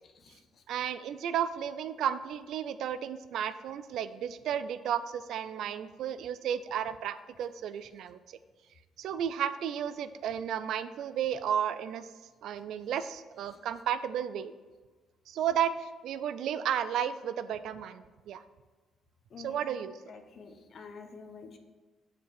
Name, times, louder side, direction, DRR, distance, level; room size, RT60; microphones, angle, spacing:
voice 1, 0.0-0.6 13.5-13.6 19.3-21.6, left 5 dB, 55° left, 6 dB, 1.0 m, -49 dB
voice 2, 0.7-8.4 9.0-12.1 12.4-14.5 15.3-18.4 19.4-19.9, right 9 dB, 80° right, 13 dB, 0.4 m, -33 dB
6.8 x 4.9 x 6.2 m, 1.3 s
cardioid pair, 90°, 0 cm